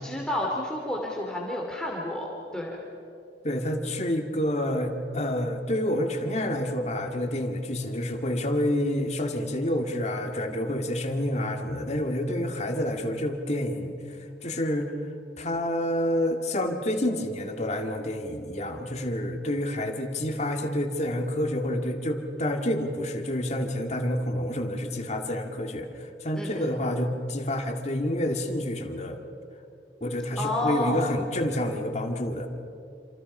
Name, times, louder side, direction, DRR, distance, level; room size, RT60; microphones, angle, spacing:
voice 1, 0.0-2.8 26.4-26.7 30.4-31.0, left 1 dB, 5° left, -2 dB, 2.6 m, -30 dB
voice 2, 3.4-14.0 14.4-14.9 15.4-29.2 30.0-32.5, left 1 dB, 40° left, 4 dB, 2.2 m, -28 dB
28.0 x 27.0 x 5.5 m, 2.6 s
head